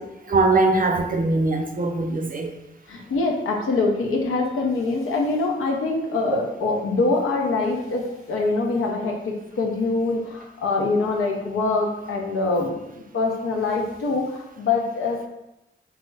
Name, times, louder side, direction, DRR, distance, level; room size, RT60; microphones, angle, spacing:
voice 1, 0.3-2.5, right 3 dB, 40° right, 4 dB, 0.5 m, -21 dB
voice 2, 2.9-15.3, left 3 dB, 85° left, 0 dB, 0.6 m, -24 dB
3.5 x 2.0 x 3.2 m, 0.91 s
cardioid pair, 50°, 21 cm